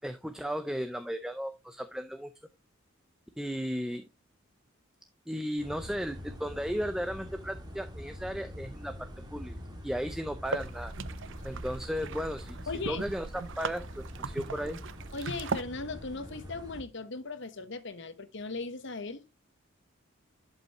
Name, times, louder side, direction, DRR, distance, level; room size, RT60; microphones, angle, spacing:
voice 1, 0.0-2.3 3.4-4.0 5.3-9.6 9.8-10.9 11.4-12.6 12.9-14.8, equal, 5° right, 0.6 m, -35 dB
sound 1, 5.6-16.8, equal, 20° right, 2.3 m, -44 dB
sound 2, 10.5-15.6, right 4 dB, 65° right, 0.6 m, -39 dB
voice 2, 12.7-13.0 15.1-19.2, left 3 dB, 60° left, 1.2 m, -38 dB
11.5 x 5.5 x 3.0 m
head